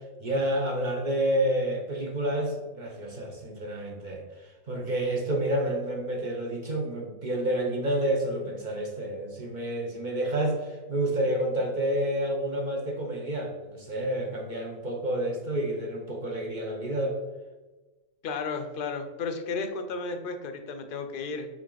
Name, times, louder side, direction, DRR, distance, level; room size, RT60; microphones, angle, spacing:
voice 1, 0.2-17.2, right 1 dB, 40° right, 1 dB, 0.9 m, -29 dB
voice 2, 18.2-21.5, left 4 dB, 50° left, 7 dB, 0.7 m, -33 dB
7.1 x 3.5 x 3.9 m, 1.2 s
omnidirectional pair, 1.3 m